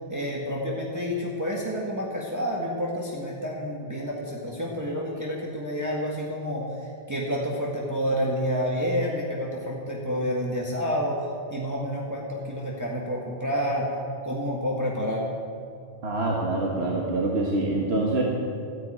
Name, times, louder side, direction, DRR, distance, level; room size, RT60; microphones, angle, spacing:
voice 1, 0.0-14.0 14.2-15.3, equal, 15° right, -3 dB, 1.8 m, -29 dB
voice 2, 16.0-18.2, right 2 dB, 70° right, -2 dB, 1.9 m, -25 dB
13.5 x 11.0 x 8.8 m, 2.4 s
omnidirectional pair, 1.1 m